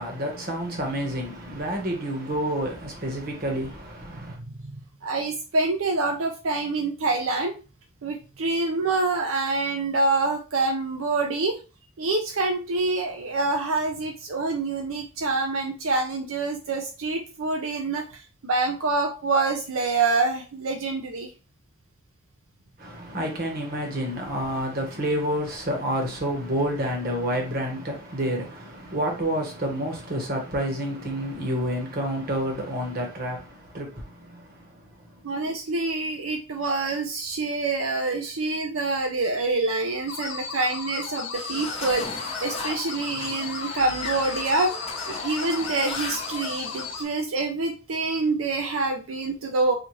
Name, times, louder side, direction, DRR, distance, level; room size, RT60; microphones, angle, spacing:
voice 1, 0.0-4.4 22.8-35.2, equal, 45° right, 1.2 m, -29 dB
voice 2, 4.3-7.5 8.0-11.6 12.0-21.3 35.2-44.7 45.1-49.7, right 3 dB, 85° right, 0.6 m, -26 dB
sound 1, 40.1-47.0, left 5 dB, 60° left, 0.8 m, -35 dB
sound 2, 41.3-47.1, left 3 dB, 30° left, 0.8 m, -36 dB
4.2 x 2.4 x 3.1 m
head